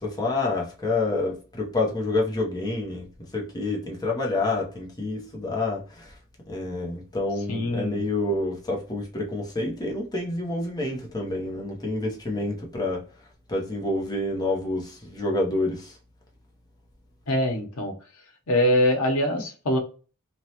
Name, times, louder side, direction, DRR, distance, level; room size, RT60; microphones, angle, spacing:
voice 1, 0.0-3.1 3.3-6.1 6.5-13.0 13.5-16.0, left 2 dB, 20° left, 0.8 m, -28 dB
voice 2, 7.5-8.0 17.3-17.9 18.5-19.8, left 1 dB, 80° left, 0.8 m, -23 dB
3.1 x 2.3 x 2.8 m
head